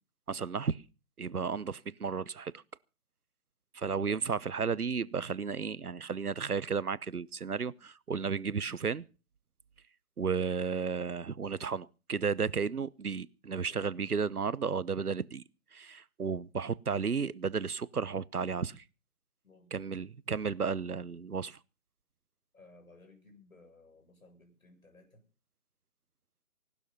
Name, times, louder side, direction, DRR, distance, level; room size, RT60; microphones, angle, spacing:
voice 1, 0.3-0.8 1.2-2.6 3.7-9.1 10.2-15.4 15.7-18.8 19.7-21.6, right 5 dB, 75° right, 1.0 m, -33 dB
voice 2, 13.5-14.1 19.4-19.9 22.5-25.3, left 3 dB, 65° left, 7.7 m, -58 dB
19.0 x 12.5 x 5.5 m
figure-of-eight pair, 155°, 45 cm